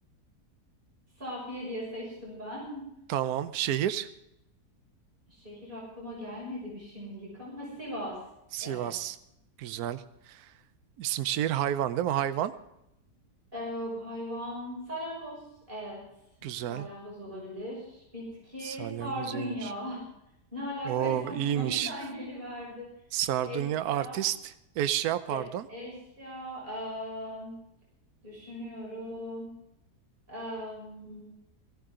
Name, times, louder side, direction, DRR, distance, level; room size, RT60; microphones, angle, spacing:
voice 1, 1.2-2.9 5.3-8.2 8.6-8.9 13.5-15.4 15.7-16.0 16.7-20.0 20.5-22.9 23.4-23.6 23.9-24.2 25.2-25.4 25.7-27.5 28.2-29.5 30.3-31.2, equal, 30° right, -4 dB, 6.7 m, -38 dB
voice 2, 3.1-4.1 8.5-9.2 9.6-10.5 11.0-12.5 16.4-16.9 18.6-19.7 20.9-21.9 23.1-25.7, right 11 dB, 70° right, 12 dB, 1.2 m, -30 dB
18.0 x 16.5 x 3.8 m, 0.83 s
omnidirectional pair, 1.7 m